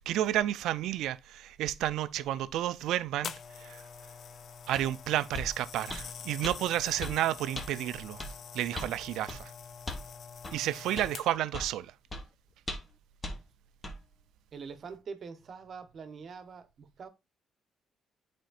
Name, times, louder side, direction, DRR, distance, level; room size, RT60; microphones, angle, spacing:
voice 1, 0.0-3.8 4.7-8.2 8.5-9.5 10.5-11.9, right 13 dB, 85° right, 0.4 m, -31 dB
sound 1, 3.2-11.6 12.3-12.5, left 7 dB, 60° left, 0.3 m, -46 dB
sound 2, 4.7-4.9 5.3-5.5 5.9-6.1 6.4-6.6 7.0-7.2 7.5-7.7 8.2-8.3 8.7-8.9 9.3-9.4 9.9-10.1 10.4-10.6 11.0-11.1 11.5-11.7 12.1-12.2 12.7-12.9 13.2-13.4 13.8-14.0, left 1 dB, 25° left, 1.2 m, -38 dB
voice 2, 14.5-17.1, right 5 dB, 55° right, 0.9 m, -44 dB
9.2 x 4.3 x 2.4 m
cardioid pair, 90°, 0 cm